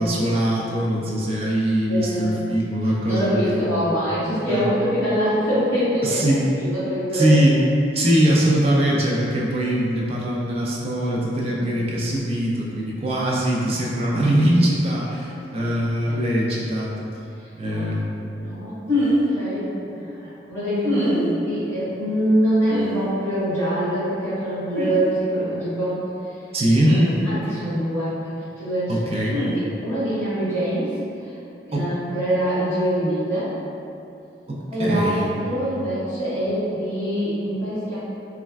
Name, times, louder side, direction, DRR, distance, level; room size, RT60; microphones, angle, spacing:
voice 1, 0.0-3.6 4.5-4.6 6.0-6.4 7.1-7.6 7.9-16.9 17.5-18.2 26.5-27.0 28.9-29.4 31.7-31.8 34.5-35.3, right 1 dB, 35° right, -4 dB, 0.4 m, -21 dB
voice 2, 1.9-2.4 2.8-6.2 6.5-7.4 11.4-11.9 15.5-15.7 16.1-16.3 17.6-17.9 18.3-18.8 19.3-20.2 20.5-26.0 27.2-29.0 29.5-30.9 31.2-31.4 31.7-33.5 34.7-38.0, equal, 15° left, -14 dB, 1.1 m, -24 dB
sound 1, 18.9-19.2 20.8-21.2 22.7-22.9 24.7-24.9 26.8-27.2 29.3-29.5, left 1 dB, 65° right, 1.2 m, -22 dB
3.2 x 2.3 x 2.2 m, 2.7 s
head